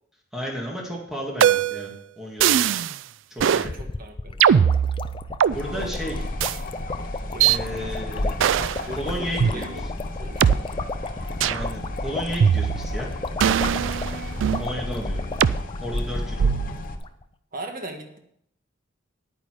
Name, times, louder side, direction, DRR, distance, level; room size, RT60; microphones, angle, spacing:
voice 1, 0.3-2.6 3.3-3.8 5.5-6.2 7.5-8.3 8.9-9.7 11.5-13.1 14.6-15.3 15.8-16.5, equal, ahead, -2 dB, 2.1 m, -33 dB
sound 1, 1.4-1.9 2.4-3.0 3.4-3.7 4.4-5.6 6.4-6.6 7.4-7.6 8.4-8.8 9.4-9.5 10.4-10.5 11.4-11.7 12.4-13.0 13.4-14.7 15.4-15.6 16.4-16.8, right 8 dB, 65° right, 0.3 m, -20 dB
voice 2, 3.4-4.4 5.7-5.9 7.3-8.2 8.8-9.8 10.2-10.7 17.5-18.2, right 2 dB, 45° right, 4 dB, 1.5 m, -39 dB
sound 2, 3.6-16.4 16.7-16.8 17.0-17.2, left 3 dB, 25° left, 0.4 m, -35 dB
sound 3, 5.5-17.0, left 1 dB, 45° left, 1.0 m, -33 dB
9.9 x 9.2 x 4.8 m, 0.73 s
head